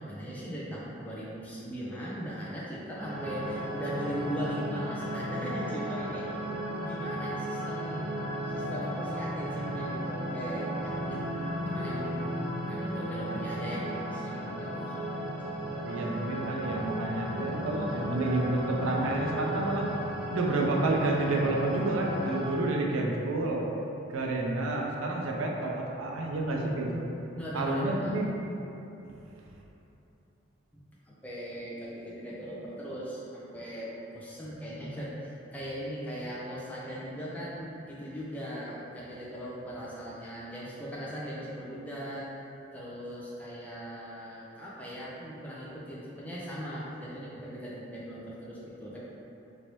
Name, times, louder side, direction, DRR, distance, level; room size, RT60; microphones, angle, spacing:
voice 1, 0.0-6.4 6.8-11.2 11.6-14.8 15.1-15.2 27.4-28.1 31.1-42.4 42.7-49.0, equal, 5° left, -7 dB, 0.4 m, -39 dB
sound 1, 3.0-22.6, equal, 80° left, 1.1 m, -35 dB
voice 2, 15.9-19.9 20.3-23.7 24.1-27.0 27.5-28.3, right 2 dB, 85° right, -1 dB, 0.4 m, -29 dB
3.0 x 2.6 x 3.0 m, 2.9 s
head